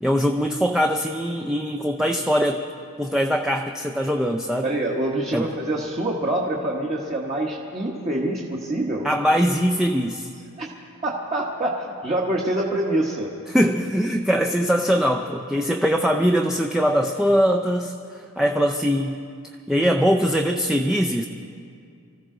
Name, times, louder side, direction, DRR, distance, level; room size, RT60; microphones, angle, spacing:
voice 1, 0.0-2.7 3.0-4.6 5.3-5.5 9.0-10.3 13.5-19.2 19.7-21.3, equal, ahead, 2 dB, 0.5 m, -22 dB
voice 2, 4.6-9.1 10.6-10.7 11.0-13.3, right 1 dB, 30° right, -2 dB, 1.2 m, -25 dB
25.0 x 14.5 x 3.8 m, 2.4 s
head